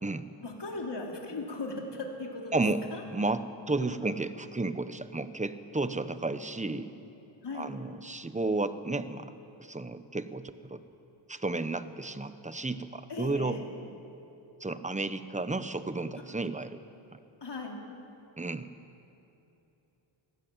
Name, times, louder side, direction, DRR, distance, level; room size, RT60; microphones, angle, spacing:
voice 1, 0.4-2.6 2.9-3.0 7.4-7.7 13.1-13.7 17.4-17.8, left 2 dB, 55° left, 0 dB, 3.9 m, -37 dB
voice 2, 2.5-2.8 3.1-6.9 7.5-9.3 9.6-10.8 11.3-13.6 14.6-16.8 17.1-17.2 18.4-18.7, right 2 dB, 15° right, 11 dB, 1.0 m, -32 dB
24.0 x 17.0 x 8.9 m, 3.0 s
wide cardioid pair, 80°, 48 cm